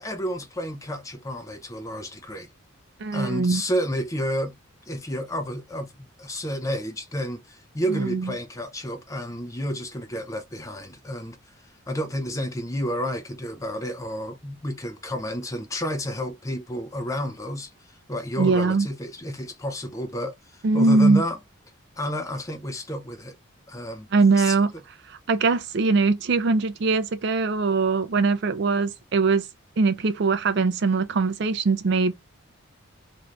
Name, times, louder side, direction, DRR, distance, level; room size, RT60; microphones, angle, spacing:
voice 1, 0.0-2.5 3.1-4.5 4.9-5.9 6.2-11.6 11.9-21.4 22.0-23.3 23.7-24.1 24.4-24.6, equal, 15° left, 0.5 m, -31 dB
voice 2, 3.0-3.6 7.9-8.3 18.4-18.9 20.6-21.2 24.1-24.7 25.3-29.4 29.8-32.1, right 3 dB, 55° right, 0.4 m, -21 dB
2.6 x 2.3 x 3.0 m
head